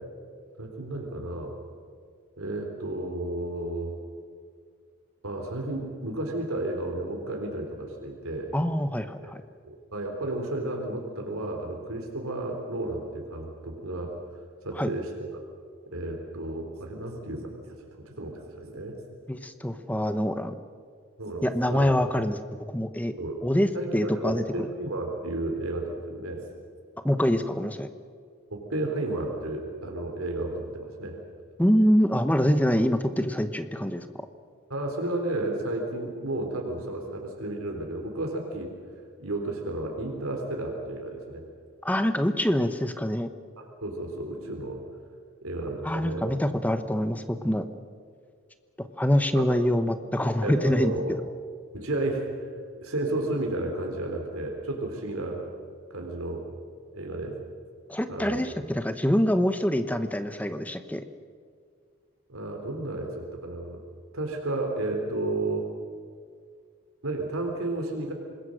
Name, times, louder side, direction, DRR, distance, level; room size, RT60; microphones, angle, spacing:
voice 1, 0.6-1.5 2.4-3.9 5.2-8.5 9.2-9.3 9.6-14.2 14.6-15.3 15.9-17.7 18.1-19.0 21.2-21.9 23.2-23.4 23.7-26.4 28.5-31.2 34.7-38.7 39.2-41.4 43.6-44.8 45.4-46.3 49.3-49.5 50.4-51.2 51.7-52.5 52.8-55.4 55.9-56.4 56.9-57.4 58.1-58.4 62.3-63.8 64.1-65.7 67.0-68.1, right 2 dB, 85° right, 2 dB, 3.7 m, -32 dB
voice 2, 8.5-9.4 14.8-14.9 19.3-20.6 21.4-23.1 23.4-24.7 27.0-27.9 31.6-34.0 41.8-43.3 45.8-47.6 49.0-51.2 57.9-61.0, equal, 5° left, 9 dB, 1.0 m, -25 dB
26.5 x 20.5 x 6.5 m, 2.1 s
head